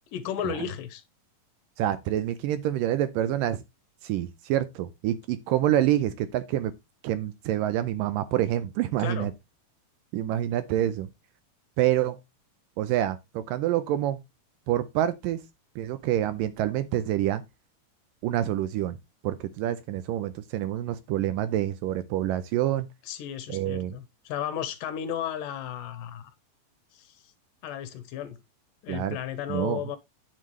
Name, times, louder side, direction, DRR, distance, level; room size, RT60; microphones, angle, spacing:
voice 1, 0.1-1.0 9.0-9.3 23.1-26.3 26.9-27.3 27.6-28.4 28.8-30.0, left 9 dB, 75° left, 2.2 m, -34 dB
voice 2, 1.8-3.6 4.0-6.7 7.0-9.3 10.1-11.1 11.8-12.2 12.8-14.2 14.7-15.4 15.8-17.4 18.2-19.0 19.2-22.9 23.5-23.9 28.9-29.2 29.5-29.8, right 12 dB, 80° right, 2.1 m, -27 dB
10.0 x 6.7 x 3.1 m
omnidirectional pair, 4.3 m